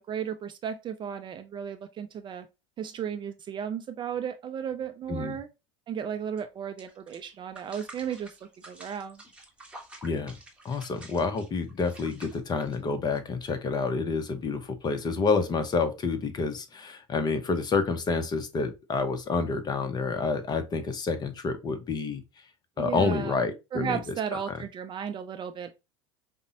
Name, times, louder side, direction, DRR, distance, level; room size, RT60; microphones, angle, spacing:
voice 1, 0.0-2.5 2.8-5.5 5.9-8.3 8.7-9.2 22.8-23.4 23.7-25.7, right 8 dB, 30° right, 0.4 m, -34 dB
sound 1, 6.3-6.4 6.8-13.2, right 1 dB, 5° right, 1.1 m, -49 dB
voice 2, 10.0-10.4 10.6-22.2 22.8-24.1, left 4 dB, 25° left, 0.7 m, -28 dB
5.1 x 2.1 x 2.8 m
hypercardioid pair, 95°, 16 cm